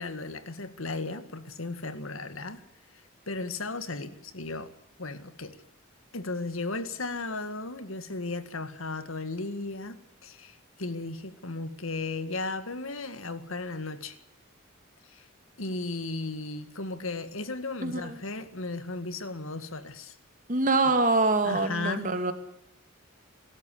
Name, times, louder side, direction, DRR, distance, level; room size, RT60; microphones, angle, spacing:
voice 1, 0.0-2.6 3.3-4.7 5.0-5.6 6.1-14.2 15.1-15.2 15.6-20.2 21.4-22.1, left 3 dB, 70° left, 11 dB, 1.9 m, -35 dB
voice 2, 17.8-18.2 20.5-22.3, right 3 dB, 35° right, 7 dB, 2.4 m, -25 dB
24.5 x 13.0 x 10.0 m, 0.79 s
head